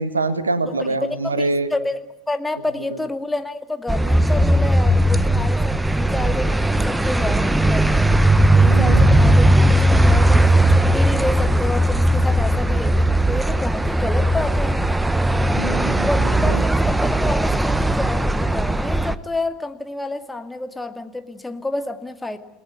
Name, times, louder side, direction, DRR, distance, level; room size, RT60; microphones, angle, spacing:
voice 1, 0.0-1.7 8.6-9.1 15.6-16.6, right 3 dB, 80° right, 13 dB, 1.6 m, -25 dB
voice 2, 0.7-2.0 2.3-8.2 8.6-14.8 16.0-22.4, left 2 dB, 10° left, 7 dB, 2.2 m, -29 dB
sound 1, 3.9-19.1, right 1 dB, 10° right, 1.1 m, -17 dB
30.0 x 19.0 x 9.5 m, 0.94 s
figure-of-eight pair, 70°, 0 cm